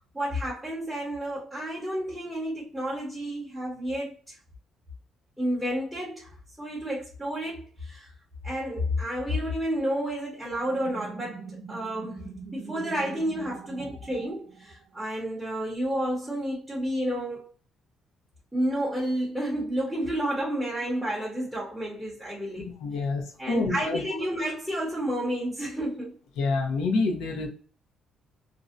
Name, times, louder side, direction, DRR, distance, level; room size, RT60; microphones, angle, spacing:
voice 1, 0.1-4.4 5.4-8.1 8.4-17.5 18.5-22.7 23.4-26.1, equal, ahead, 0.7 m, -31 dB
sound 1, 10.6-15.0, right 5 dB, 90° right, 0.6 m, -42 dB
voice 2, 22.6-24.0 26.4-27.5, left 3 dB, 85° left, 0.5 m, -27 dB
2.5 x 2.1 x 2.5 m
cardioid pair, 140°, 0 cm